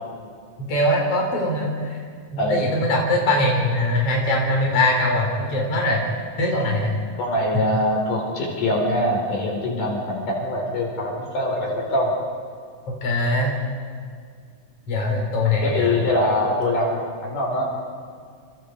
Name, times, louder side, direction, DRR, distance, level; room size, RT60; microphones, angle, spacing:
voice 1, 0.7-2.0 2.3-6.0 6.4-6.9 13.0-13.6 14.9-16.0, left 1 dB, 45° left, -1 dB, 5.3 m, -21 dB
voice 2, 7.2-12.1 15.6-17.7, left 1 dB, 70° left, -1 dB, 6.1 m, -23 dB
30.0 x 28.5 x 4.8 m, 2.1 s
omnidirectional pair, 3.8 m